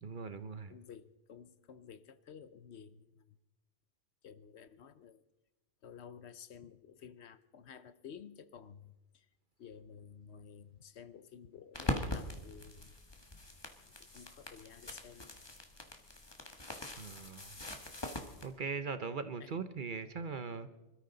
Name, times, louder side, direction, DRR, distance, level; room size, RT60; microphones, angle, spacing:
voice 1, 0.0-0.7 17.0-17.5 18.4-20.7, right 5 dB, 45° right, 11 dB, 0.9 m, -40 dB
voice 2, 0.7-3.4 4.2-5.2 5.8-9.3 9.6-12.9 14.1-15.3 19.4-19.5, left 7 dB, 65° left, 14 dB, 0.9 m, -53 dB
sound 1, 11.7-18.5, left 1 dB, 20° left, 1.5 m, -42 dB
25.5 x 13.0 x 3.9 m, 1.0 s
omnidirectional pair, 1.3 m